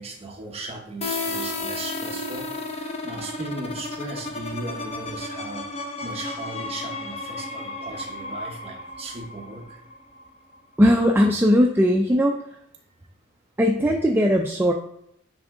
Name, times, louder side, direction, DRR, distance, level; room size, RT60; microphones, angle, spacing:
voice 1, 0.0-9.8, right 2 dB, 30° right, 1 dB, 1.0 m, -37 dB
sound 1, 1.0-10.6, left 2 dB, 30° left, 0.7 m, -33 dB
voice 2, 10.8-12.4 13.6-14.7, equal, 10° right, 2 dB, 0.3 m, -19 dB
9.5 x 3.5 x 3.7 m, 0.77 s
head